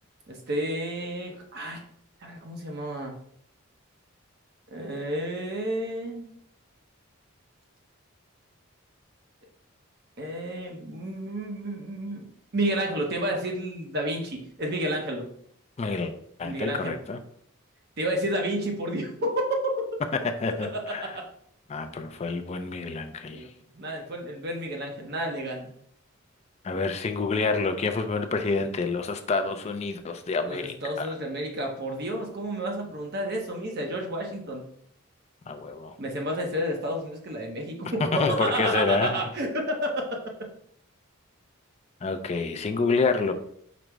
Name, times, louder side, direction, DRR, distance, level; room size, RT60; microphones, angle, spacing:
voice 1, 0.3-1.8 2.2-3.1 4.7-6.3 10.2-15.3 16.4-16.9 18.0-19.5 20.6-21.2 23.3-23.5 23.8-25.7 30.5-34.6 36.0-40.0, right 1 dB, 50° right, 1 dB, 0.6 m, -31 dB
voice 2, 15.8-16.1 16.4-17.2 20.1-21.1 21.7-23.4 26.6-31.1 35.5-35.9 38.0-39.2 42.0-43.3, left 4 dB, 30° left, 7 dB, 0.4 m, -28 dB
5.0 x 2.0 x 4.5 m, 0.66 s
head